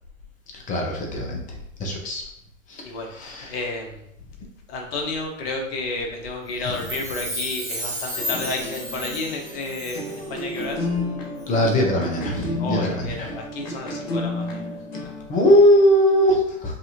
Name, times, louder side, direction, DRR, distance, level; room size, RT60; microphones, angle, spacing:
voice 1, 0.7-1.4 1.8-2.2 2.7-2.8 3.2-3.5 11.5-13.3 15.3-16.8, equal, 20° left, 0 dB, 1.0 m, -20 dB
voice 2, 2.8-4.0 4.7-10.9 12.6-14.8 15.0-15.1, left 3 dB, 45° left, 2 dB, 1.3 m, -31 dB
Chime, 6.6-10.3 10.5-10.6, equal, 10° right, 1.4 m, -33 dB
sound 1, 8.2-15.9, left 2 dB, 70° left, 1.5 m, -32 dB
5.4 x 2.8 x 2.8 m, 0.74 s
hypercardioid pair, 115°, 41 cm